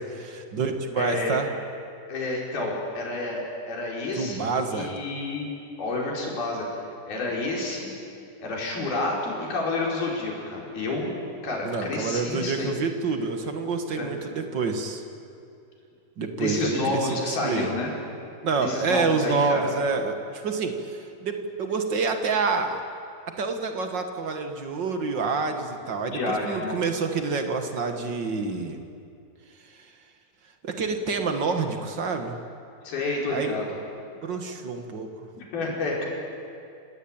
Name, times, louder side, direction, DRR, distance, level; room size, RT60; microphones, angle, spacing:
voice 1, 0.1-1.5 4.2-4.9 11.6-15.0 16.2-17.7 18.4-22.8 23.4-28.8 29.8-29.9 30.6-32.4 33.3-33.6 34.2-35.1, right 4 dB, 45° right, 6 dB, 1.6 m, -28 dB
voice 2, 1.0-1.4 2.1-5.5 5.8-6.7 7.1-7.9 8.4-11.1 11.4-12.7 13.9-14.1 16.4-17.9 18.6-19.6 25.5-25.6 26.1-26.7 32.8-33.7 35.4-36.1, left 2 dB, 85° left, -2 dB, 6.6 m, -29 dB
28.0 x 19.0 x 8.9 m, 2.5 s
omnidirectional pair, 4.2 m